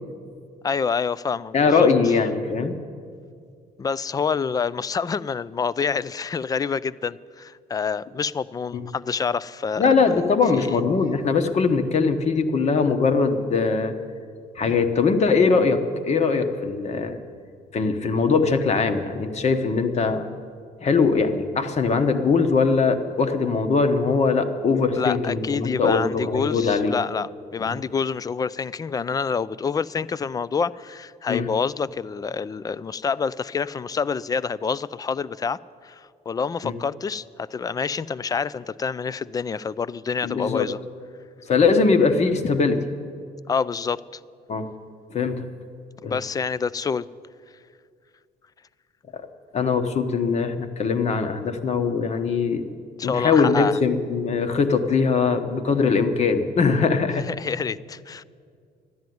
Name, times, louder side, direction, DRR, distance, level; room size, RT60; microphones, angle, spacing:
voice 1, 0.6-1.9 3.8-9.9 10.5-10.8 24.9-40.8 43.5-44.0 46.0-47.1 53.0-53.8 57.2-58.2, left 5 dB, 20° left, 19 dB, 0.3 m, -27 dB
voice 2, 1.5-2.8 8.7-8.9 9.8-13.9 14.6-17.2 17.7-20.3 20.8-26.9 27.6-27.7 31.3-31.5 36.6-36.7 40.2-40.7 41.5-42.7 44.5-44.6 45.1-45.5 46.0-46.1 49.1-49.2 49.5-52.7 53.0-57.2, left 4 dB, 40° left, 8 dB, 1.2 m, -21 dB
13.0 x 10.5 x 9.4 m, 2.2 s
cardioid pair, 110°, 17 cm